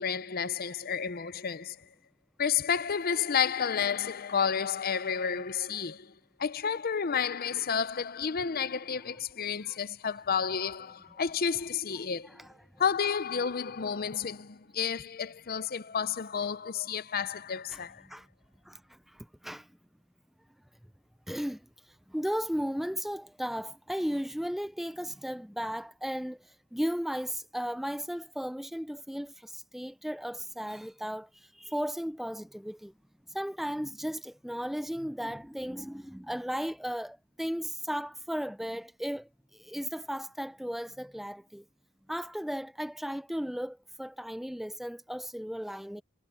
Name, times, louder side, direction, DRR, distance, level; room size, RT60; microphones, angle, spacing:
voice 1, 0.0-1.8 2.4-6.1 6.4-12.5 12.8-18.0, left 7 dB, 45° left, 0.6 m, -31 dB
voice 2, 17.7-18.3 18.7-19.7 21.3-21.6 22.1-32.9 33.3-41.6 42.1-46.0, equal, ahead, 0.5 m, -35 dB
head